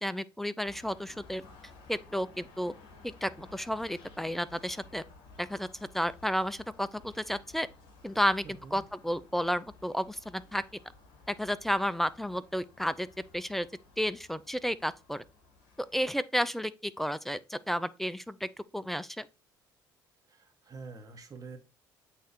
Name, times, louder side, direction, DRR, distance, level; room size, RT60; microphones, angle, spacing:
voice 1, 0.0-1.4 1.9-2.7 3.2-5.0 5.4-5.7 5.9-7.7 8.0-10.6 11.3-13.1 13.3-13.7 14.0-15.2 15.9-19.3, equal, ahead, 0.5 m, -32 dB
sound 1, 0.6-16.1, left 3 dB, 60° left, 1.3 m, -56 dB
voice 2, 8.4-8.8 20.3-21.6, right 4 dB, 35° right, 1.6 m, -46 dB
8.2 x 3.1 x 4.5 m
figure-of-eight pair, 50°, 11 cm